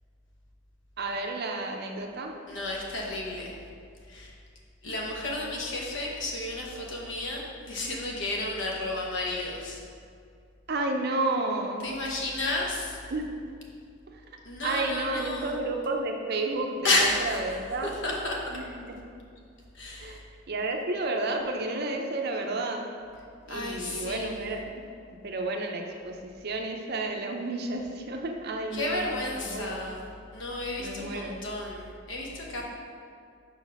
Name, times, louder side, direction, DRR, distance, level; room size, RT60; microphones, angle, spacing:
voice 1, 1.0-2.3 10.7-11.8 13.1-13.3 14.1-14.2 14.6-17.9 18.5-19.0 20.0-20.2 20.5-22.8 23.5-24.7 25.2-29.8 30.8-31.3, right 2 dB, 50° right, 3 dB, 0.6 m, -31 dB
voice 2, 2.5-3.5 4.1-4.3 4.8-9.8 11.8-13.0 14.4-15.6 16.8-17.4 17.8-18.6 19.7-20.2 23.5-24.5 28.7-30.1 30.3-32.6, left 2 dB, 60° left, -2 dB, 1.0 m, -32 dB
4.8 x 4.1 x 5.8 m, 2.3 s
head